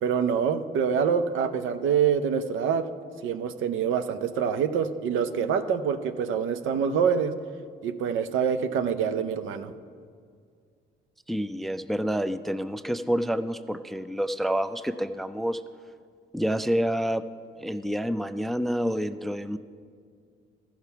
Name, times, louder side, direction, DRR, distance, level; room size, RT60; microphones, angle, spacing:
voice 1, 0.0-2.9 3.2-7.3 7.8-9.7, right 7 dB, 80° right, 10 dB, 0.6 m, -26 dB
voice 2, 11.3-15.6 16.3-17.2 17.6-19.6, equal, ahead, 12 dB, 0.3 m, -28 dB
13.5 x 5.8 x 5.6 m, 2.1 s
cardioid pair, 90°, 20 cm